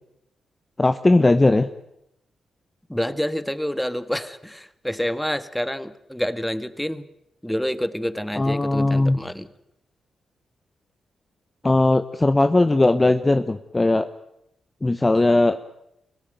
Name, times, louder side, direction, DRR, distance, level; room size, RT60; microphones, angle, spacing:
voice 1, 0.8-1.7 8.3-9.2 11.6-14.1 14.8-15.6, left 2 dB, 25° left, 9 dB, 1.0 m, -18 dB
voice 2, 2.9-7.1 7.4-9.5, equal, 5° left, 12 dB, 1.6 m, -28 dB
24.5 x 17.0 x 9.2 m, 0.82 s
cardioid pair, 60°, 0 cm